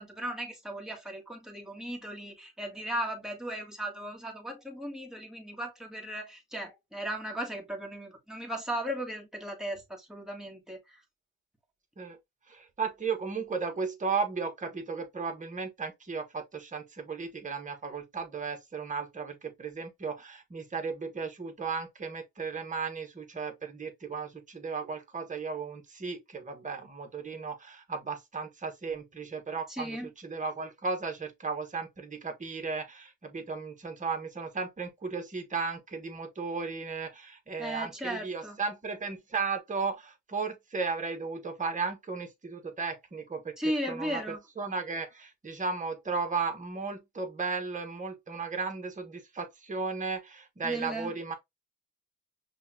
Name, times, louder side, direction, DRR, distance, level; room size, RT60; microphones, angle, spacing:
voice 1, 0.0-11.0 29.7-30.1 37.6-38.6 43.6-44.4 50.6-51.1, equal, ahead, 1.6 m, -36 dB
voice 2, 12.5-43.6 43.9-44.2 44.6-51.3, right 4 dB, 25° right, 1.3 m, -35 dB
5.5 x 2.4 x 2.7 m
cardioid pair, 90°, 30 cm